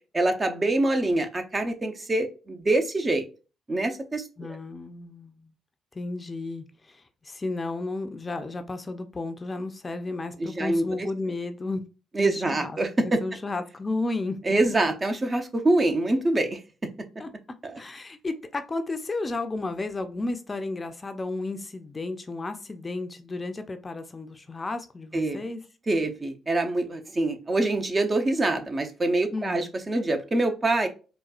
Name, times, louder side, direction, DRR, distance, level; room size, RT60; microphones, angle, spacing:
voice 1, 0.1-3.2 3.7-4.2 10.4-10.8 12.1-13.2 14.4-16.6 17.6-17.8 25.1-25.4 25.9-30.9, right 2 dB, 35° right, 0.7 m, -25 dB
voice 2, 4.4-5.5 5.9-11.8 12.2-14.4 17.2-17.3 17.8-25.6 29.3-29.7, left 2 dB, 30° left, 0.5 m, -33 dB
4.2 x 2.2 x 2.4 m
hypercardioid pair, 50°, 0 cm